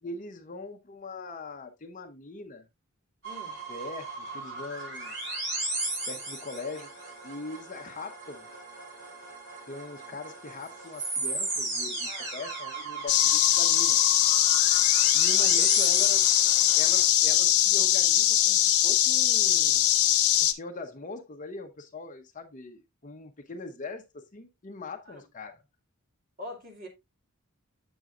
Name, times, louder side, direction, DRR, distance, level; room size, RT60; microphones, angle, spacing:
voice 1, 0.0-2.7 3.7-5.1 6.1-6.9 7.2-8.5 9.7-14.0 15.1-16.2 16.8-19.8 20.4-25.6, left 3 dB, 35° left, 0.8 m, -41 dB
voice 2, 3.2-3.6 12.0-12.3 15.4-15.8 25.0-25.2 26.4-26.9, left 1 dB, 40° right, 2.4 m, -43 dB
sound 1, 3.2-17.0, right 2 dB, 60° right, 3.8 m, -36 dB
sound 2, 13.1-20.5, left 12 dB, 85° left, 0.7 m, -22 dB
8.0 x 6.1 x 2.5 m
head